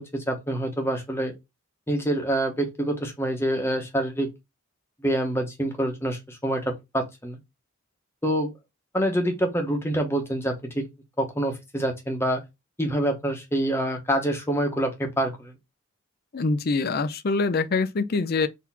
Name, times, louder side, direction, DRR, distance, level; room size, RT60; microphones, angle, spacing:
voice 1, 0.0-1.3 1.9-4.3 5.0-7.4 8.2-8.5 8.9-10.8 11.2-12.4 12.8-15.5, right 1 dB, 10° left, 0.9 m, -26 dB
voice 2, 16.3-18.5, left 3 dB, 45° left, 0.4 m, -24 dB
4.1 x 2.8 x 4.1 m
head